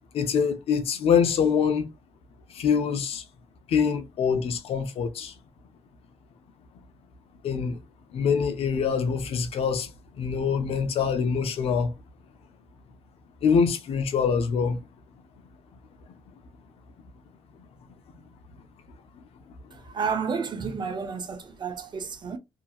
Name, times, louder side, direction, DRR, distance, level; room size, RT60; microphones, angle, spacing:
voice 1, 0.1-1.9 2.5-3.2 3.7-5.3 7.4-7.8 8.1-9.9 10.2-11.9 13.4-14.8, left 6 dB, 75° left, 0.6 m, -24 dB
voice 2, 19.7-22.4, right 5 dB, 45° right, 0.6 m, -31 dB
2.8 x 2.7 x 2.3 m
cardioid pair, 105°, 10 cm